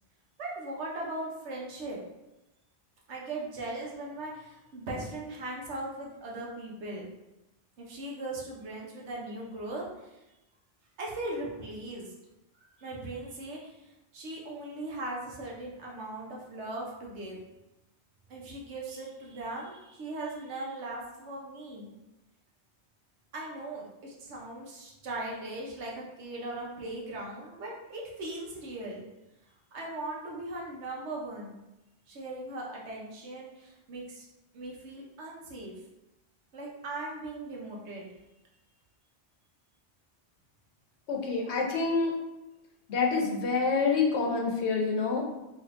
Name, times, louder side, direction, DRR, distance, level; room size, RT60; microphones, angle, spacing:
voice 1, 0.4-2.0 3.1-7.1 7.8-10.2 11.0-12.1 12.6-17.4 18.3-22.0 23.3-29.1 29.7-31.6 32.1-34.3 34.5-35.7 36.5-38.1, right 2 dB, 80° right, -3 dB, 1.1 m, -39 dB
voice 2, 41.1-42.1 42.9-45.2, left 4 dB, 75° left, 1 dB, 0.9 m, -27 dB
3.5 x 2.8 x 2.5 m, 0.96 s
omnidirectional pair, 1.2 m